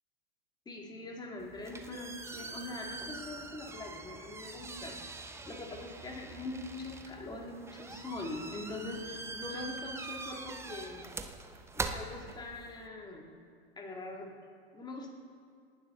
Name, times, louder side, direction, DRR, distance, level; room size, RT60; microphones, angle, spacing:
voice 1, 0.7-5.0 5.5-11.1 11.7-13.3 13.8-14.4 14.7-15.1, left 2 dB, 15° left, 0 dB, 2.4 m, -43 dB
sound 1, 1.4-12.9, right 3 dB, 10° right, 0.9 m, -43 dB
28.5 x 11.0 x 3.9 m, 2.2 s
figure-of-eight pair, 100°, 32 cm